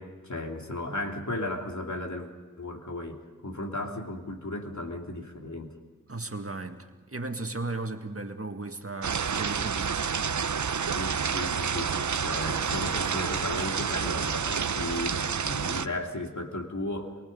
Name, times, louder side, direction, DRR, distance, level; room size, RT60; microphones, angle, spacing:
voice 1, 0.0-2.3 2.6-5.8 10.9-17.2, left 2 dB, 60° left, 3.2 m, -35 dB
voice 2, 6.1-10.0, right 2 dB, 45° right, 1.8 m, -36 dB
sound 1, 9.0-15.9, right 6 dB, 60° right, 0.7 m, -29 dB
28.5 x 23.0 x 5.5 m
wide cardioid pair, 45°, 33 cm